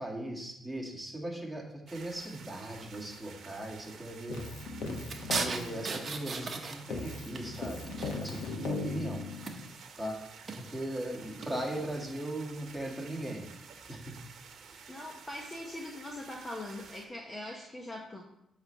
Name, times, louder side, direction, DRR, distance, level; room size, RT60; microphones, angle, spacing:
voice 1, 0.0-4.4 5.4-7.8 8.2-9.2 10.0-10.2 10.7-13.5 13.9-14.1, right 1 dB, ahead, -2 dB, 2.0 m, -38 dB
sound 1, 1.9-17.1, right 6 dB, 65° right, 1.0 m, -51 dB
Keyboard (musical), 4.3-6.6 6.9-9.7, left 3 dB, 85° left, 1.2 m, -38 dB
sound 2, 5.1-7.0 7.3-8.6 9.4-9.9 10.3-10.7 11.4-11.9, right 4 dB, 40° right, 1.0 m, -37 dB
voice 2, 14.9-18.2, left 1 dB, 20° left, 0 dB, 0.9 m, -42 dB
8.0 x 3.3 x 6.5 m, 0.80 s
cardioid pair, 90°, 0 cm